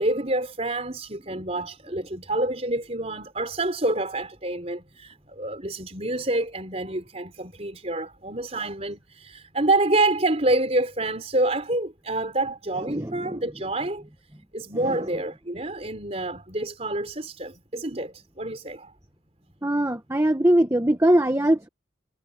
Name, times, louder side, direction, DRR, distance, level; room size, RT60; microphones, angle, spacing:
voice 1, 0.0-14.0 14.5-18.9, right 2 dB, 30° right, 4.6 m, -27 dB
voice 2, 19.6-21.7, right 1 dB, 15° right, 1.0 m, -21 dB
head